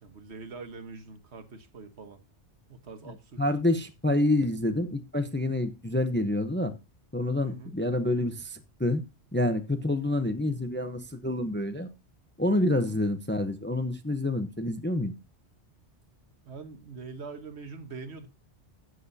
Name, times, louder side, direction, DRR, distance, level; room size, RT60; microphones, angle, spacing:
voice 1, 0.0-2.2 2.7-3.4 7.4-7.8 12.8-13.0 16.4-18.3, right 4 dB, 70° right, 1.6 m, -43 dB
voice 2, 3.4-6.7 7.1-9.0 9.3-11.9 12.4-15.1, left 1 dB, 10° left, 0.6 m, -27 dB
13.0 x 7.7 x 2.7 m
omnidirectional pair, 1.2 m